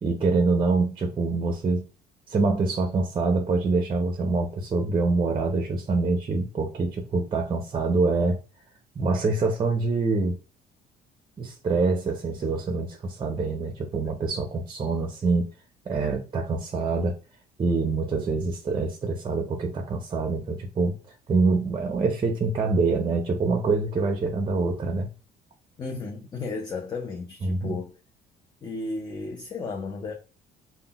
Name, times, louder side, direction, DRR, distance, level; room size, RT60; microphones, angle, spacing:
voice 1, 0.0-1.9 2.3-8.4 9.0-10.4 11.4-15.5 15.9-17.2 17.6-20.9 21.3-25.1 27.4-27.8, right 3 dB, 30° right, 0.5 m, -25 dB
voice 2, 25.8-27.9 28.6-30.1, left 3 dB, 25° left, 0.5 m, -34 dB
3.6 x 2.1 x 2.2 m
cardioid pair, 110°, 17 cm